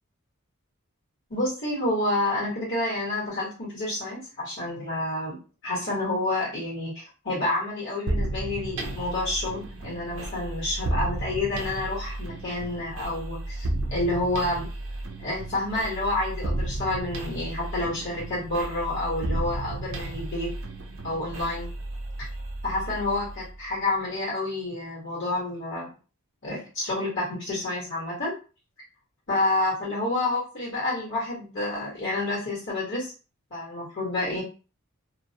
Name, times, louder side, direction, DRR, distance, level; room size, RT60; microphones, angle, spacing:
voice 1, 1.3-14.7 15.2-20.5 21.0-21.7 22.6-25.9 26.4-28.3 29.3-33.1 33.5-34.4, left 2 dB, 55° left, -6 dB, 1.3 m, -29 dB
sound 1, 8.1-23.7, right 2 dB, 60° right, 0.5 m, -33 dB
2.5 x 2.1 x 2.7 m, 0.35 s
head